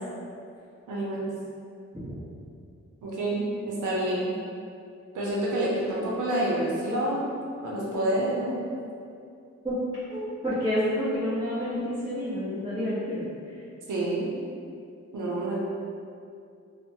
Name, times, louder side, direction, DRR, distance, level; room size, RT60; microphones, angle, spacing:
voice 1, 0.9-1.3 3.0-4.3 5.1-8.6 13.9-14.3 15.1-15.6, right 1 dB, 90° right, -5 dB, 0.5 m, -28 dB
voice 2, 10.1-13.2, equal, 15° right, -15 dB, 1.1 m, -29 dB
2.6 x 2.0 x 2.7 m, 2.5 s
cardioid pair, 40°, 30 cm